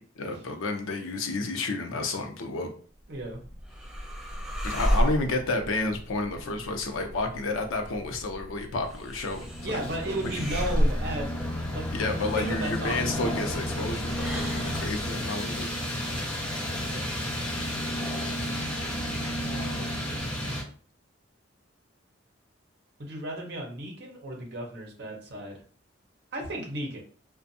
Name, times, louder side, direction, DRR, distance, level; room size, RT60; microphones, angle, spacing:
voice 1, 0.2-2.7 4.6-9.8 10.3-10.5 11.9-15.7, left 2 dB, 85° left, 4 dB, 0.5 m, -31 dB
sound 1, 3.0-15.1, equal, 5° right, 0.4 m, -33 dB
voice 2, 3.1-3.4 9.6-11.3 11.7-13.1 16.8-17.1 19.4-20.5 23.0-25.6 26.3-27.0, right 1 dB, 55° right, 0 dB, 0.7 m, -35 dB
sound 2, 9.2-20.6, equal, 20° left, 0.8 m, -32 dB
2.5 x 2.2 x 2.6 m, 0.43 s
head